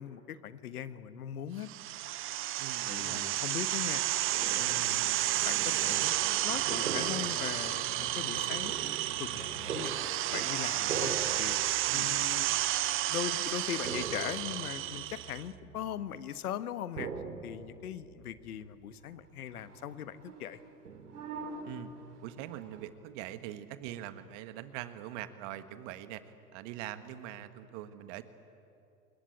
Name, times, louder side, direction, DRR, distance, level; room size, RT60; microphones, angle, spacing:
voice 1, 0.0-1.7 2.9-4.0 4.6-6.2 6.4-8.9 9.2-9.9 10.3-12.5 13.1-17.1 17.4-20.6, left 10 dB, 70° left, 13 dB, 1.3 m, -40 dB
sound 1, 1.7-15.4, right 14 dB, 30° right, 0.8 m, -32 dB
voice 2, 2.6-3.4 11.9-12.1 21.6-21.9 22.2-26.2 26.5-28.2, right 12 dB, 50° right, 11 dB, 1.6 m, -43 dB
sound 2, 4.3-16.4 17.0-18.8 19.1-19.2 19.5-22.9, right 5 dB, 75° right, 2.8 m, -43 dB
26.5 x 21.0 x 8.6 m, 2.6 s
figure-of-eight pair, 90°, 46 cm